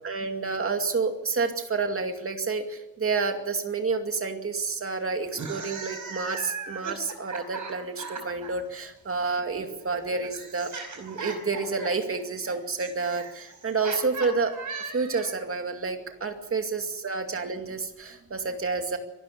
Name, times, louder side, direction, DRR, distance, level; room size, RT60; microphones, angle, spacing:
voice 1, 0.0-14.5 14.9-19.0, right 4 dB, 35° right, 5 dB, 2.4 m, -29 dB
sound 1, 5.3-8.5 9.6-15.5, right 4 dB, 55° right, 4.9 m, -38 dB
24.0 x 12.5 x 8.6 m, 0.96 s
wide cardioid pair, 160°, 37 cm